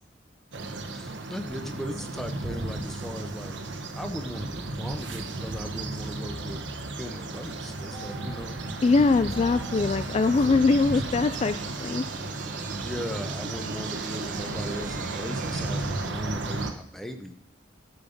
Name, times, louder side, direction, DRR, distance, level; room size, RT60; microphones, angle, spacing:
sound 1, 0.5-16.7, right 2 dB, 90° right, 1.1 m, -34 dB
voice 1, 0.9-8.6 10.3-10.6 10.9-11.0 12.7-17.3, equal, ahead, 6 dB, 1.0 m, -38 dB
sound 2, 7.9-12.1, right 2 dB, 55° left, 4.5 m, -47 dB
sound 3, 8.4-16.1, right 6 dB, 45° right, 0.6 m, -43 dB
voice 2, 8.8-12.0, left 3 dB, 35° left, 11 dB, 0.3 m, -22 dB
12.5 x 7.1 x 5.3 m, 0.69 s
head